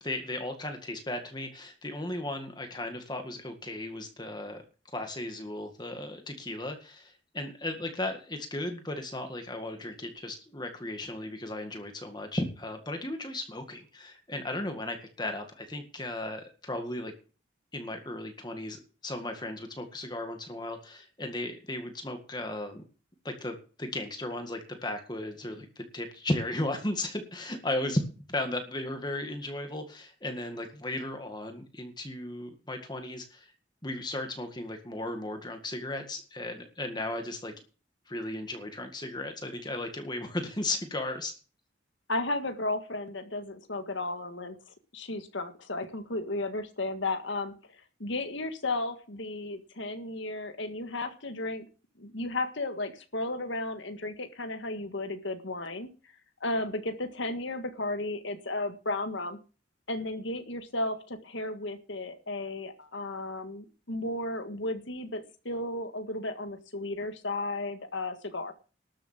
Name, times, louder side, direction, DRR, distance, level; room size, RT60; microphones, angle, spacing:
voice 1, 0.0-4.6 4.9-17.1 17.7-22.8 23.2-33.5 33.8-37.5 38.1-41.3, left 1 dB, 20° left, 5 dB, 1.9 m, -35 dB
voice 2, 42.1-44.6 44.9-47.5 48.0-51.7 52.0-55.9 56.4-59.4 59.9-68.5, left 2 dB, 70° left, 8 dB, 1.7 m, -34 dB
12.5 x 7.1 x 7.4 m, 0.36 s
head